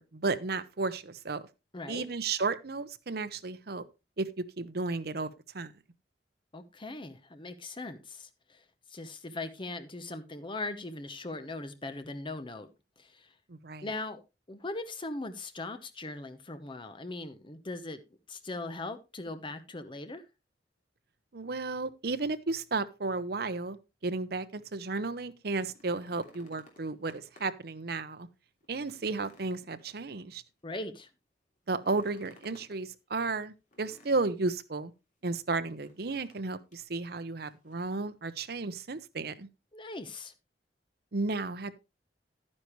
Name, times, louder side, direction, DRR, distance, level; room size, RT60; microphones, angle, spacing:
voice 1, 0.0-1.4 1.9-3.8 4.2-4.3 4.6-5.7 13.5-13.9 21.3-23.8 24.0-28.3 28.7-30.4 31.7-34.9 35.2-39.5 41.1-41.7, right 3 dB, 60° right, 0.8 m, -33 dB
voice 2, 1.7-2.1 6.5-8.6 8.9-12.7 13.0-13.3 13.8-14.2 14.5-18.0 18.3-20.2 30.6-31.1 39.7-40.3, left 2 dB, 30° left, 1.0 m, -40 dB
sound 1, 25.4-27.7 28.1-28.2 28.6-30.5 31.7-32.8 33.7-34.6 35.8-36.4 36.7-36.9 37.4-38.0 39.1-39.2, left 1 dB, 45° left, 3.0 m, -59 dB
10.5 x 9.8 x 3.1 m
head